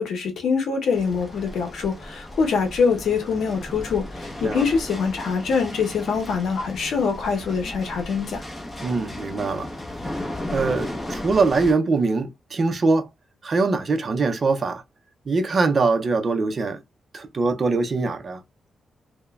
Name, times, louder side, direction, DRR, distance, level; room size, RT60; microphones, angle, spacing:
voice 1, 0.0-8.4, left 5 dB, 80° left, 0.7 m, -24 dB
sound 1, 0.9-11.7, left 1 dB, 15° left, 0.8 m, -35 dB
voice 2, 8.8-9.7 10.5-13.1 13.4-14.8 15.3-16.8 17.1-18.4, right 3 dB, 45° right, 0.5 m, -22 dB
2.9 x 2.1 x 2.3 m
cardioid pair, 110°, 0 cm